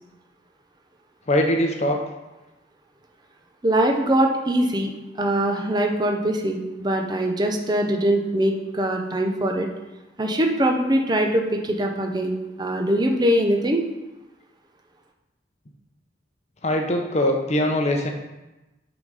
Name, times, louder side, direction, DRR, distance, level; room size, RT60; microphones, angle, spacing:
voice 1, 1.3-2.0 16.6-18.1, left 1 dB, 35° left, 3 dB, 0.7 m, -22 dB
voice 2, 3.6-4.9 5.2-9.7 10.2-13.8, right 1 dB, 20° right, 2 dB, 0.6 m, -22 dB
7.1 x 4.0 x 4.9 m, 1.1 s
head